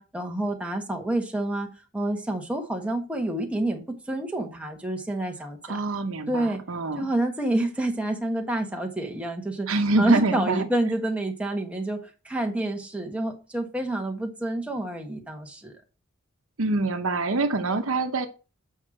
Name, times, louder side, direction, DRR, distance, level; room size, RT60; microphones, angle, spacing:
voice 1, 0.0-1.7 1.9-5.8 6.3-6.6 7.0-9.7 10.0-15.7, right 1 dB, 5° right, 1 dB, 1.4 m, -28 dB
voice 2, 5.6-7.1 9.7-10.7 16.6-18.3, right 2 dB, 70° right, 7 dB, 0.9 m, -25 dB
8.2 x 5.5 x 5.0 m, 0.33 s
head